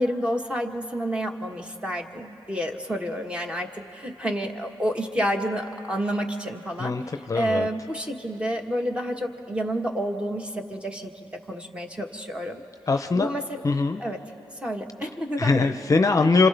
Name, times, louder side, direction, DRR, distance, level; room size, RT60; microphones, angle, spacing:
voice 1, 0.0-6.9 7.3-12.6 13.1-13.6 14.0-14.2 14.6-15.8 16.2-16.3, equal, 10° right, 2 dB, 1.3 m, -29 dB
voice 2, 6.8-7.7 12.9-13.3 13.6-14.0 15.0-15.1 15.4-16.5, left 3 dB, 35° left, 7 dB, 0.6 m, -22 dB
29.5 x 26.5 x 3.4 m, 2.7 s
wide cardioid pair, 105°, 9 cm